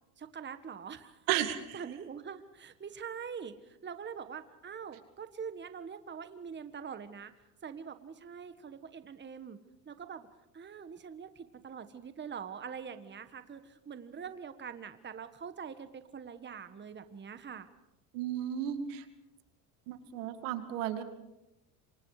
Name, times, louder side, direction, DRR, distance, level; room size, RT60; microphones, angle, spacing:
voice 1, 0.2-1.3 1.7-7.3 7.6-9.6 9.8-10.3 10.5-17.7, right 7 dB, 25° right, 10 dB, 1.4 m, -44 dB
voice 2, 1.3-1.8 18.1-19.0 19.9-21.0, right 11 dB, 75° right, 9 dB, 2.4 m, -33 dB
27.5 x 25.0 x 4.9 m, 0.92 s
supercardioid pair, 95°, 46 cm